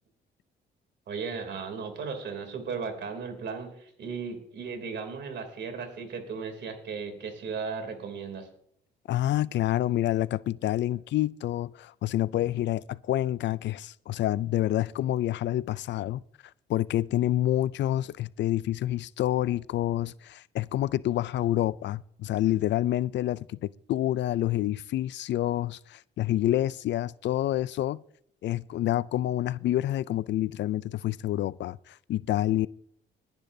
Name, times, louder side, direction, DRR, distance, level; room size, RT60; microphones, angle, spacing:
voice 1, 1.1-8.5, right 5 dB, 65° right, 3.0 m, -36 dB
voice 2, 9.1-16.2 16.7-23.6 23.9-28.0 28.4-32.7, left 13 dB, 65° left, 0.4 m, -28 dB
21.0 x 10.5 x 2.7 m
cardioid pair, 90°, 20 cm